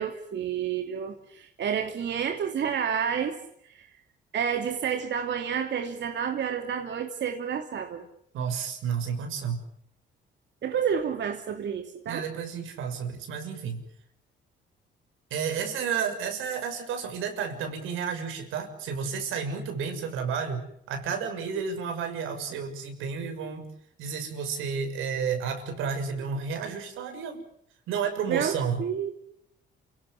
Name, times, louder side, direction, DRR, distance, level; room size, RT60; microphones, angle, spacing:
voice 1, 0.0-3.4 3.6-3.9 4.3-8.1 10.6-12.2 28.3-29.1, right 8 dB, 65° right, 5 dB, 2.9 m, -30 dB
voice 2, 8.3-9.6 12.1-13.8 15.3-23.7 24.0-27.4 27.9-28.8, right 6 dB, 90° right, 6 dB, 6.4 m, -31 dB
29.0 x 17.5 x 9.9 m, 0.71 s
cardioid pair, 90°, 20 cm